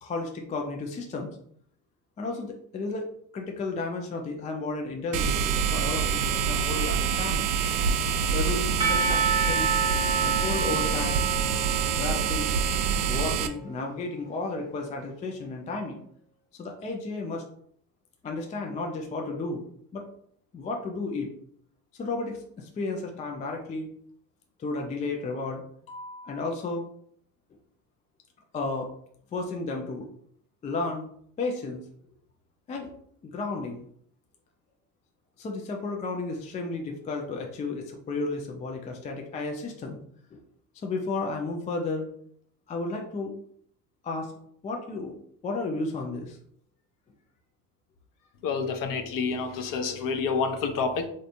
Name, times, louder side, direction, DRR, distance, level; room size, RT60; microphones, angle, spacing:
voice 1, 0.0-1.3 2.2-3.1 3.3-7.5 8.3-9.7 10.2-11.2 11.9-12.5 13.0-16.0 16.5-17.4 18.2-19.7 19.9-20.1 20.5-21.3 21.9-23.9 24.6-26.8 28.5-28.9 29.3-30.1 30.6-31.1 31.4-31.8 32.7-32.9 33.2-33.8 35.4-40.0 40.3-40.4 40.8-42.1 42.7-43.4 44.0-44.3 44.6-45.2 45.4-46.4, left 3 dB, 15° left, 2 dB, 0.3 m, -33 dB
sound 1, 5.1-13.5, right 7 dB, 75° right, 0.5 m, -26 dB
Percussion / Church bell, 8.8-13.9, right 4 dB, 5° right, 0.9 m, -30 dB
voice 2, 48.4-51.1, left 5 dB, 45° left, 6 dB, 0.7 m, -28 dB
3.2 x 2.6 x 2.6 m, 0.65 s
hypercardioid pair, 70°, 49 cm